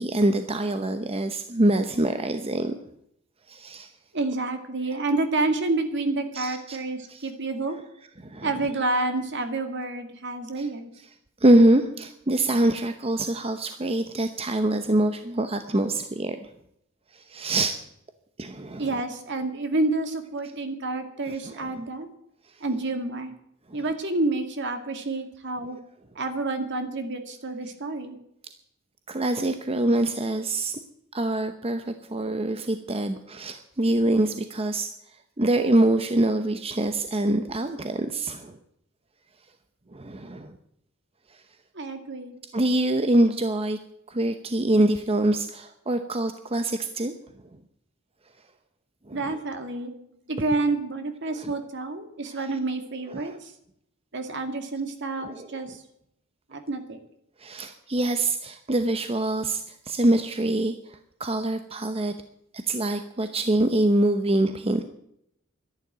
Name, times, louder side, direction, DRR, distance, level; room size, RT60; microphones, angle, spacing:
voice 1, 0.0-2.7 3.5-3.9 6.3-6.8 7.1-7.3 8.2-8.5 10.6-10.7 11.4-16.4 17.1-17.7 18.4-18.9 21.3-21.7 23.7-23.8 29.1-30.8 31.1-34.9 35.4-38.6 39.9-40.6 42.5-43.8 44.1-47.1 49.1-49.4 51.4-51.5 53.1-53.4 55.2-55.5 57.4-62.1 62.7-64.8, right 1 dB, 30° right, 8 dB, 0.9 m, -24 dB
voice 2, 4.1-7.8 8.4-10.9 18.8-22.1 22.6-23.4 23.7-25.8 26.2-28.2 41.7-42.3 49.1-53.5 54.1-55.8 56.5-57.0, right 2 dB, 60° right, 7 dB, 2.3 m, -29 dB
12.5 x 11.0 x 9.2 m, 0.75 s
head